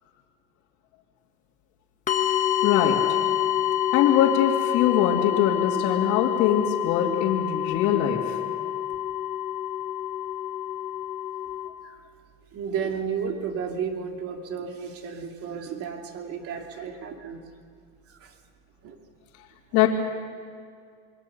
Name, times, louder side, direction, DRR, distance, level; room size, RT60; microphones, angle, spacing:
sound 1, 2.1-11.7, left 11 dB, 25° left, 1.4 m, -27 dB
voice 1, 2.6-3.0 3.9-8.3 19.7-19.9, left 10 dB, 60° left, -4 dB, 2.7 m, -22 dB
voice 2, 12.5-17.5 18.1-18.3 18.8-19.0 19.7-19.9, right 6 dB, 45° right, 3 dB, 2.7 m, -33 dB
27.5 x 23.5 x 6.9 m, 2.2 s
cardioid pair, 150°, 33 cm